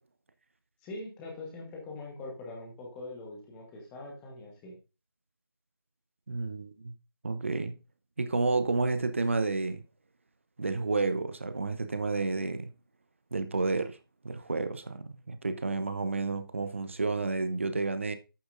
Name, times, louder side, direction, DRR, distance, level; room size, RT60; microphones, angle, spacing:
voice 1, 0.8-4.7, left 2 dB, 5° left, 1.2 m, -43 dB
voice 2, 6.3-6.9 7.2-7.7 8.2-9.8 10.6-12.7 13.3-14.0 14.2-18.1, right 3 dB, 30° right, 0.8 m, -30 dB
11.0 x 8.7 x 2.6 m
figure-of-eight pair, 165°, 13 cm